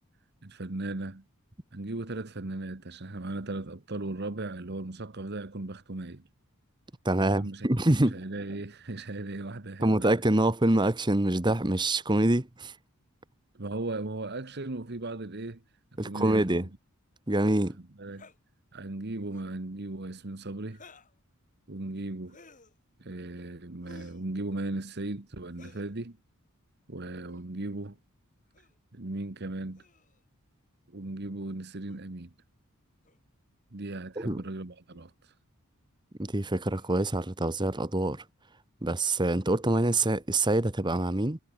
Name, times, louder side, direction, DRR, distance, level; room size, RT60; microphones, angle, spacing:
voice 1, 0.4-1.2 1.7-6.2 7.3-7.7 8.1-10.1 13.5-15.6 16.0-16.7 18.0-18.3 18.7-20.8 21.7-22.4 23.0-26.2 26.9-28.0 28.9-29.8 30.9-32.3 33.7-35.3, right 2 dB, 50° right, 1.3 m, -37 dB
voice 2, 7.0-8.2 9.8-12.7 16.0-16.6 17.3-17.8 34.2-34.4 36.2-38.2 38.8-41.4, right 1 dB, 20° right, 1.2 m, -25 dB
sound 1, 18.1-18.4 19.2-19.6 20.7-21.2 22.3-22.7 23.8-24.3 25.5-25.9 27.2-27.5 28.5-28.8 29.7-30.2 31.9-32.0 33.1-33.2 33.9-34.1 34.9-35.1 36.6-37.0, left 3 dB, 35° left, 3.7 m, -55 dB
head